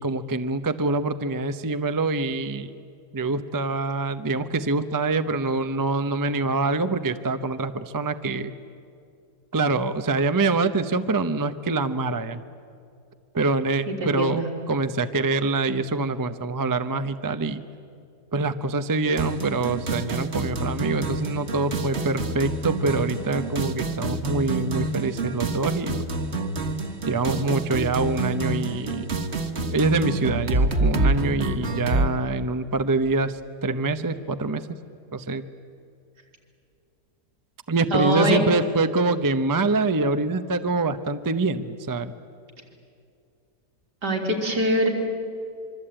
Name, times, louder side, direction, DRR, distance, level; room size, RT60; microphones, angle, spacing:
voice 1, 0.0-2.7 3.1-8.5 9.5-12.4 13.3-14.4 14.7-17.6 18.3-26.0 27.1-29.1 29.7-34.8 35.1-35.4 37.7-42.1, right 3 dB, 20° right, 10 dB, 0.5 m, -25 dB
voice 2, 13.9-14.5 37.9-38.4 44.0-44.9, right 1 dB, 80° right, 0 dB, 4.1 m, -23 dB
sound 1, 19.2-32.1, right 2 dB, 40° right, 1.7 m, -27 dB
25.5 x 24.0 x 8.9 m, 2.4 s
omnidirectional pair, 1.8 m